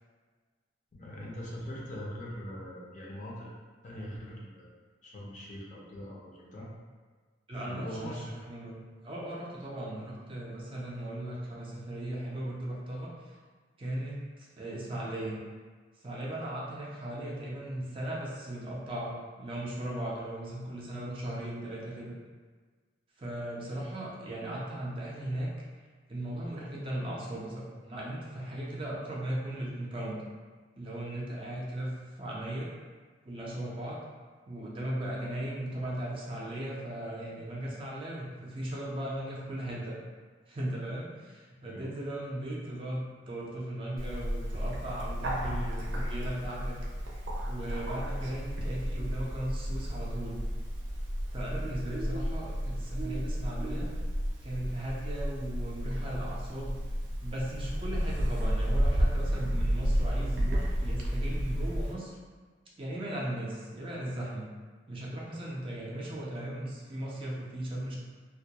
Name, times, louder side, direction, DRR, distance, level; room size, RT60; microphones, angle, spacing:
voice 1, 0.9-3.5 3.8-4.7 5.0-6.7 7.5-8.4 39.7-39.8 41.6-41.9, equal, 40° left, -4 dB, 0.5 m, -42 dB
voice 2, 7.5-13.4 13.8-15.4 16.0-22.1 23.2-25.5 26.1-30.2 30.8-32.7 33.2-34.0 34.5-40.0 40.5-46.8 47.4-50.4 51.3-53.9 54.4-56.7 57.2-62.1 62.8-64.5 64.9-68.0, right 1 dB, 30° right, -5 dB, 0.4 m, -37 dB
Bird, 44.0-61.9, equal, 85° right, 0.5 m, -32 dB
2.2 x 2.1 x 2.7 m, 1.5 s
head